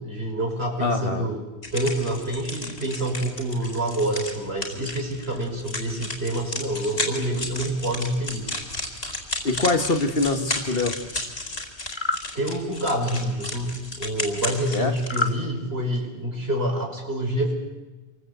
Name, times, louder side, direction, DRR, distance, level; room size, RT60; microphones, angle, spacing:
voice 1, 0.0-1.4 1.7-8.5 12.3-17.5, right 1 dB, 75° right, 1 dB, 5.8 m, -27 dB
voice 2, 0.8-1.3 9.4-10.9 14.7-14.9, left 2 dB, 65° left, 7 dB, 2.0 m, -24 dB
sound 1, 1.6-15.3, left 2 dB, 90° left, 4.4 m, -33 dB
sound 2, 11.8-12.3 15.0-15.4, left 3 dB, 30° left, 0.9 m, -27 dB
27.5 x 23.0 x 8.3 m, 1.2 s
omnidirectional pair, 1.0 m